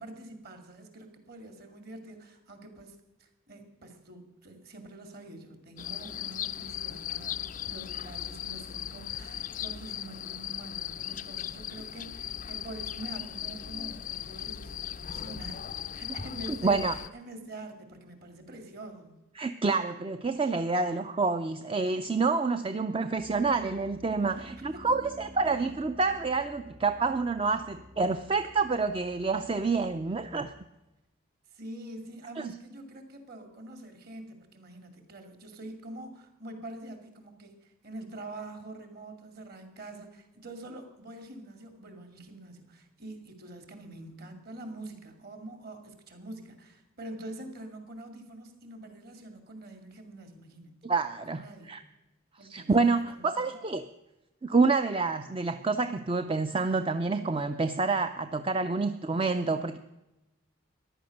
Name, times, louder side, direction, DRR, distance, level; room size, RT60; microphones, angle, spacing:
voice 1, 0.0-15.6 15.9-19.2 24.2-24.9 31.5-50.8 51.3-51.7 52.4-53.6, right 1 dB, 45° right, 6 dB, 2.4 m, -45 dB
sound 1, 5.8-17.1, left 10 dB, 40° left, 0.4 m, -38 dB
voice 2, 16.6-16.9 19.4-30.5 32.4-32.5 50.8-51.8 52.5-53.9 54.4-59.8, right 4 dB, 25° right, 9 dB, 0.4 m, -28 dB
Piano, 23.2-30.7, equal, 70° right, 3.9 m, -51 dB
14.5 x 11.0 x 6.4 m, 0.96 s
head